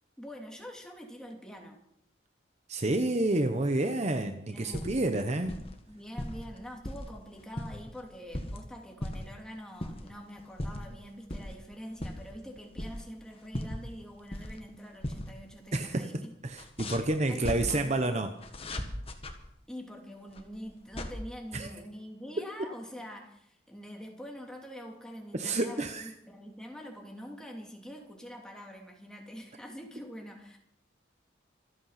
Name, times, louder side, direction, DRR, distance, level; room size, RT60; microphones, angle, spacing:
voice 1, 0.2-1.8 4.4-5.2 5.9-16.3 17.3-18.0 19.7-30.6, equal, 5° left, 0 dB, 2.8 m, -45 dB
voice 2, 2.7-5.5 15.7-18.3 21.5-21.7 25.3-26.1, right 2 dB, 35° right, 7 dB, 0.9 m, -29 dB
sound 1, 4.5-5.1 5.4-5.8 6.2-7.1 7.4-8.6 9.0-9.4 9.8-10.1 10.4-10.9 11.3-11.5 11.9-13.2 13.5-14.7 15.0-15.3 15.6-15.7 16.5-17.6 18.4-19.3 20.3-21.1, left 1 dB, 30° left, 1.6 m, -37 dB
26.0 x 8.6 x 5.8 m, 0.76 s
head